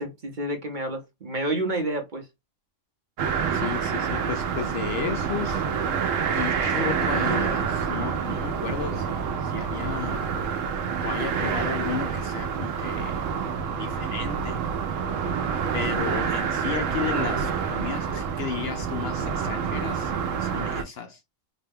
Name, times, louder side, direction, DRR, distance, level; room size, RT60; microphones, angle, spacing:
voice 1, 0.0-2.3, right 1 dB, 45° right, 0.9 m, -29 dB
sound 1, 3.2-20.8, right 6 dB, 90° right, 1.0 m, -27 dB
voice 2, 3.5-5.6 5.9-6.1 6.3-10.3 11.0-13.2 13.8-14.6 15.7-20.1 20.4-21.2, left 7 dB, 65° left, 0.7 m, -33 dB
3.9 x 2.2 x 3.3 m
omnidirectional pair, 1.3 m